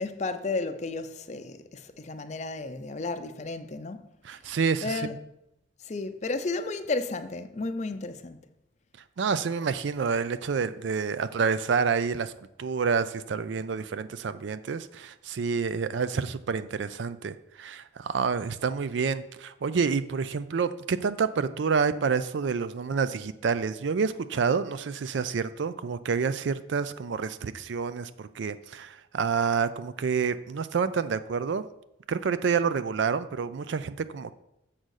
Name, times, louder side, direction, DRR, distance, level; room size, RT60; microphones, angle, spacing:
voice 1, 0.0-4.1 4.5-5.1 5.8-8.4, left 3 dB, 35° left, 0.5 m, -33 dB
voice 2, 4.2-5.2 9.2-12.3 12.6-31.7 32.1-34.3, right 5 dB, 65° right, 0.4 m, -28 dB
7.4 x 3.9 x 6.4 m
head